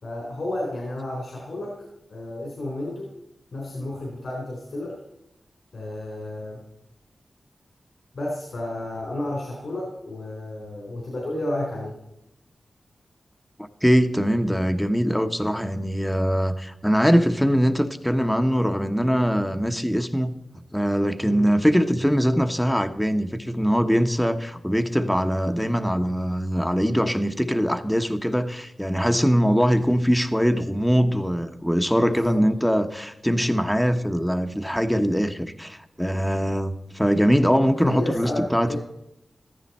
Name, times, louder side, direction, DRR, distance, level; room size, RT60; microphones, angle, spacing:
voice 1, 0.0-1.7 2.1-3.1 3.5-5.0 5.7-6.6 8.1-12.0 21.2-21.5 32.0-32.4 37.8-38.8, left 1 dB, 80° left, -3 dB, 3.9 m, -31 dB
voice 2, 13.8-20.3 20.7-38.8, equal, 5° left, 7 dB, 1.1 m, -22 dB
14.5 x 14.0 x 4.3 m, 0.85 s
cardioid pair, 55°, 0 cm